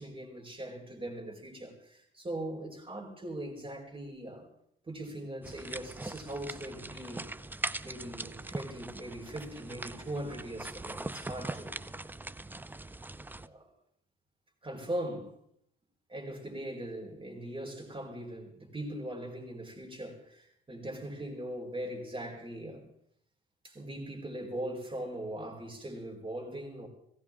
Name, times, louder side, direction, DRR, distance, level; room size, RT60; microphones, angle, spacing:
voice 1, 0.0-4.5 4.9-7.3 7.8-11.8 13.4-13.7 14.6-15.3 16.1-22.9 23.6-26.9, right 1 dB, 25° right, 4.4 m, -40 dB
sound 1, 5.4-13.5, right 2 dB, 10° right, 0.5 m, -41 dB
18.5 x 16.0 x 3.6 m
cardioid pair, 90°, 20 cm